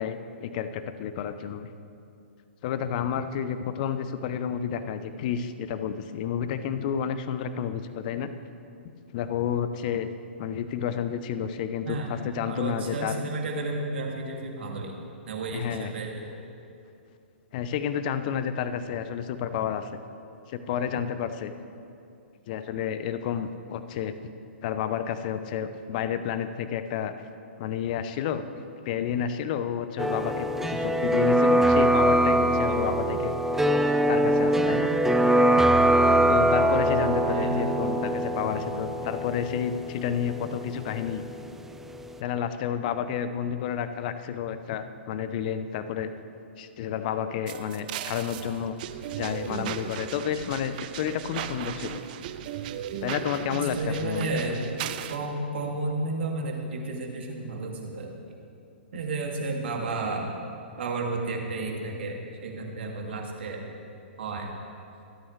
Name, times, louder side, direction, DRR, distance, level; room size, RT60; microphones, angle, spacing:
voice 1, 0.0-1.7 2.6-8.3 9.1-10.1 10.4-13.2 15.5-15.9 17.5-20.0 20.5-21.5 22.5-24.1 24.6-27.1 27.6-28.4 28.8-33.3 34.1-34.9 35.5-35.6 36.3-41.2 42.2-46.1 46.6-48.8 49.2-52.0 53.0-54.3, left 8 dB, 45° left, 11 dB, 0.8 m, -30 dB
voice 2, 12.4-14.9 15.3-16.3 37.3-38.8 53.4-54.6 55.1-58.1 58.9-60.3 60.8-63.6 64.2-64.5, right 2 dB, 65° right, 0 dB, 2.5 m, -32 dB
sound 1, 30.0-41.7 42.0-42.1, right 1 dB, 5° right, 0.6 m, -23 dB
sound 2, 47.5-55.2, right 10 dB, 45° right, 0.7 m, -37 dB
25.0 x 8.7 x 3.3 m, 2.6 s
figure-of-eight pair, 120°, 6 cm